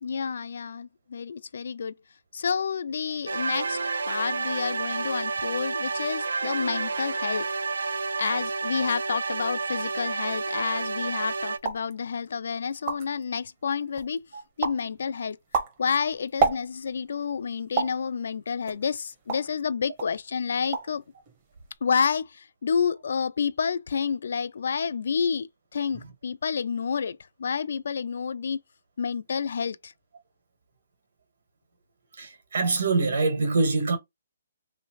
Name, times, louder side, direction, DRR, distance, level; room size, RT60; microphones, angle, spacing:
voice 1, 0.0-2.0 2.3-3.8 4.1-7.5 8.2-14.3 14.6-15.4 15.8-21.0 21.8-28.6 29.0-29.9, left 6 dB, 55° left, 0.3 m, -29 dB
sound 1, 3.3-11.6, right 4 dB, 80° right, 0.5 m, -30 dB
sound 2, 11.6-11.9 12.4-12.5 12.7-13.2 13.7-14.2 14.6-14.9 15.3-17.0 17.8-18.0 18.7-19.6 20.0-20.2 20.5-21.0 21.3-21.8, right 5 dB, 20° right, 0.8 m, -29 dB
voice 2, 32.2-34.0, right 3 dB, 60° right, 1.5 m, -24 dB
3.2 x 3.1 x 2.5 m
hypercardioid pair, 175°, 0 cm